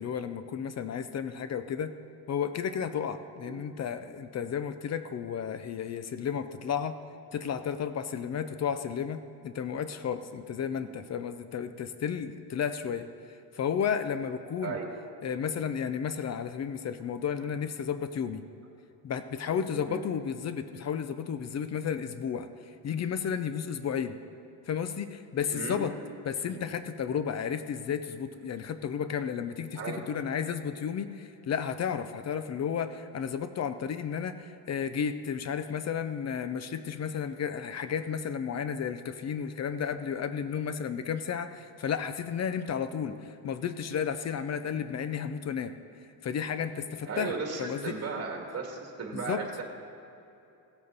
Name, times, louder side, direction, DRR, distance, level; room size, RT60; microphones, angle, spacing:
voice 1, 0.0-1.9 2.3-7.0 7.3-13.1 13.5-14.8 15.2-18.4 19.0-22.5 22.8-24.2 24.7-25.9 26.3-45.8 46.2-48.0 49.1-49.4, left 7 dB, 40° left, 11 dB, 0.5 m, -33 dB
voice 2, 14.6-14.9 19.8-20.1 25.5-25.8 26.4-26.6 29.7-30.0 43.0-43.1 44.6-44.8 47.1-49.6, right 4 dB, 35° right, 1 dB, 2.2 m, -36 dB
16.5 x 7.7 x 4.0 m, 2.8 s
cardioid pair, 120°, 41 cm